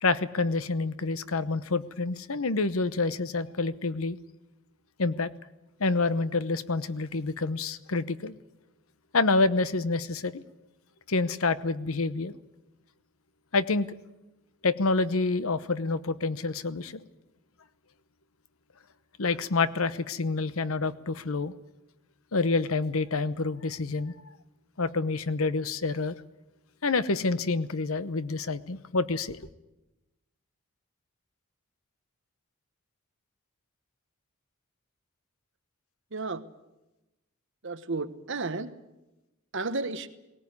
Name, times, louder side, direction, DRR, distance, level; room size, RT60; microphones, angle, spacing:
voice 1, 0.0-4.2 5.0-5.3 5.8-8.3 9.1-10.4 11.1-12.3 13.5-13.9 14.6-17.0 19.2-21.5 22.3-24.1 24.8-26.2 26.8-29.5, left 3 dB, 70° left, 15 dB, 0.9 m, -27 dB
voice 2, 36.1-36.4 37.6-38.7 39.5-40.1, right 3 dB, 60° right, 10 dB, 1.2 m, -32 dB
18.5 x 18.5 x 9.7 m, 0.99 s
head